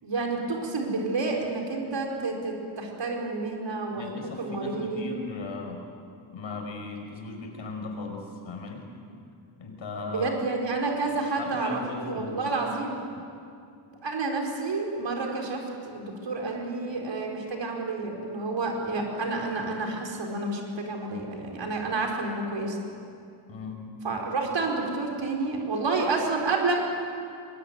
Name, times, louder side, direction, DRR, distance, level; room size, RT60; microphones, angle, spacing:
voice 1, 0.0-5.1 10.1-12.9 14.0-22.8 24.0-26.8, right 3 dB, 60° right, 1 dB, 4.6 m, -29 dB
voice 2, 4.0-5.8 6.3-8.9 9.6-10.3 11.4-12.4 23.5-23.8, left 3 dB, 65° left, 2 dB, 5.6 m, -37 dB
23.0 x 22.0 x 9.6 m, 2.4 s
wide cardioid pair, 140°, 48 cm